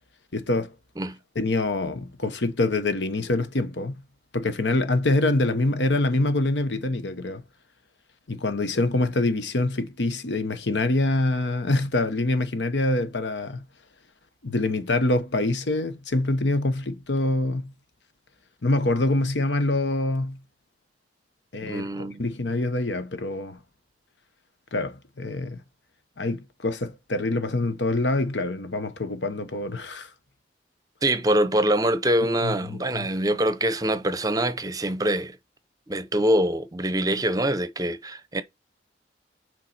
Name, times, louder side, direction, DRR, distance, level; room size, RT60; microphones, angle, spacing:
voice 1, 0.3-0.7 1.3-4.0 4.3-7.4 8.3-13.6 14.4-17.7 18.6-20.4 21.5-23.6 24.7-25.6 26.2-30.1 32.4-33.1, left 2 dB, 75° left, 1.0 m, -25 dB
voice 2, 21.6-22.3 31.0-35.4 35.9-38.4, right 1 dB, 20° right, 0.7 m, -24 dB
7.3 x 4.7 x 4.1 m
head